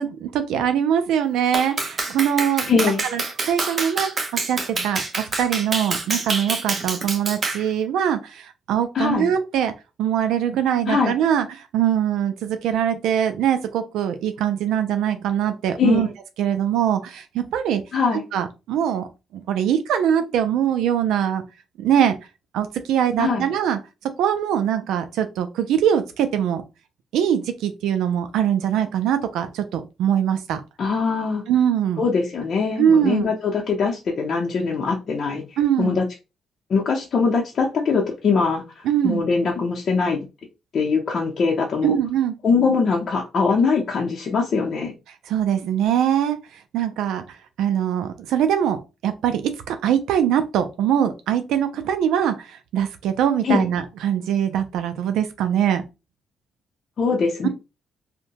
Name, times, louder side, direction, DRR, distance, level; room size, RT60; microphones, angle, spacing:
voice 1, 0.0-2.7 3.1-9.7 10.0-16.1 16.4-17.8 18.3-19.1 19.3-21.4 21.8-22.2 22.5-23.8 24.2-26.6 27.1-30.6 31.5-32.0 32.8-33.3 35.6-36.0 38.8-39.2 41.8-42.3 45.2-47.2 47.6-55.8 57.4-57.5, right 9 dB, 85° right, 0.3 m, -22 dB
Clapping, 1.5-7.7, right 3 dB, 40° right, 0.6 m, -27 dB
voice 2, 2.7-3.0 8.9-9.3 10.9-11.1 15.8-16.1 17.9-18.2 23.2-23.4 30.8-31.4 32.0-36.0 36.7-40.2 40.7-42.0 42.4-44.9 53.4-53.7 57.0-57.5, left 5 dB, 50° left, 0.6 m, -22 dB
2.6 x 2.1 x 2.8 m
cardioid pair, 90°, 0 cm